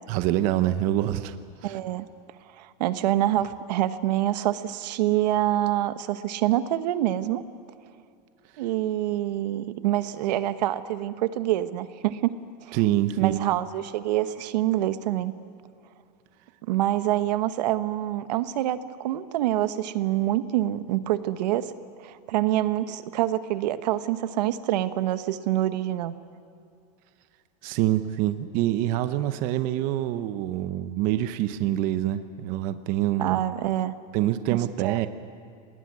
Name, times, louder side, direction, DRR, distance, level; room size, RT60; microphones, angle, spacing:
voice 1, 0.1-1.4 1.6-1.8 12.7-13.4 27.6-33.4 34.1-35.1, right 13 dB, 40° right, 11 dB, 0.8 m, -25 dB
voice 2, 1.6-2.1 2.6-7.4 8.6-12.3 12.6-12.8 13.2-15.3 16.6-21.7 22.0-26.2 33.2-33.9 34.8-35.1, right 13 dB, 75° right, 12 dB, 1.2 m, -26 dB
23.0 x 20.0 x 9.6 m, 2.4 s
supercardioid pair, 165°, 21 cm